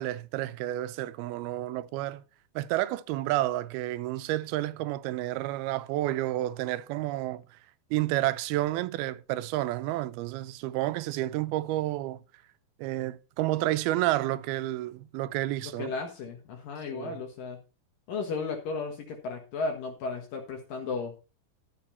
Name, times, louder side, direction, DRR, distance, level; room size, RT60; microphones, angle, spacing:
voice 1, 0.0-2.2 2.6-7.6 7.9-12.2 12.8-15.9 16.9-17.2, right 16 dB, 90° right, 2.6 m, -30 dB
voice 2, 15.8-17.6 18.1-21.1, left 4 dB, 70° left, 3.1 m, -34 dB
12.5 x 7.5 x 4.2 m
omnidirectional pair, 4.3 m